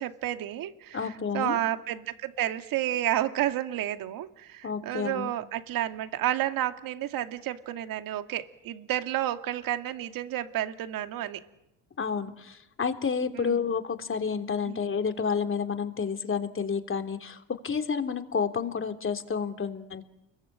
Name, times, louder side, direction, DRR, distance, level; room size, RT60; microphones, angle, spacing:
voice 1, 0.0-11.4 13.3-13.6 14.7-14.8, right 12 dB, 65° right, 8 dB, 2.4 m, -31 dB
voice 2, 0.9-1.6 4.6-5.3 12.0-20.0, left 6 dB, 35° left, 8 dB, 3.5 m, -30 dB
29.5 x 22.5 x 8.9 m, 0.89 s
supercardioid pair, 75°, 37 cm